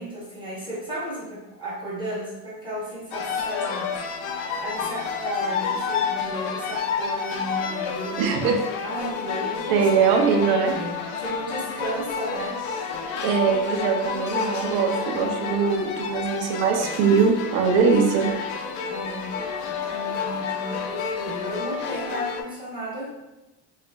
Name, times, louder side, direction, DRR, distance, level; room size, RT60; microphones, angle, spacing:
voice 1, 0.0-3.9 4.6-8.2 8.8-9.9 10.3-12.6 18.9-19.4 19.6-23.1, right 1 dB, 10° right, -8 dB, 0.7 m, -34 dB
sound 1, 3.1-22.4, left 6 dB, 85° left, 0.6 m, -30 dB
voice 2, 8.2-8.6 9.7-10.7 13.2-18.3, right 5 dB, 60° right, 3 dB, 0.6 m, -21 dB
3.0 x 2.4 x 3.3 m, 1.0 s
cardioid pair, 155°, 41 cm